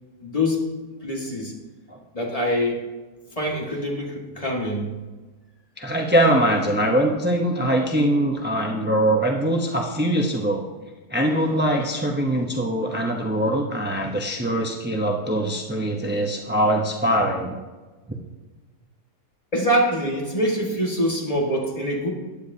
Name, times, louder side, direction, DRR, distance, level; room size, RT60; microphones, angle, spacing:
voice 1, 0.2-0.7 1.0-1.5 2.1-2.8 3.4-4.9 19.5-22.1, equal, 20° left, -2 dB, 1.8 m, -24 dB
voice 2, 5.8-10.6 11.1-17.6, right 1 dB, 10° right, 1 dB, 0.5 m, -22 dB
15.0 x 10.0 x 2.8 m, 1.3 s
omnidirectional pair, 1.7 m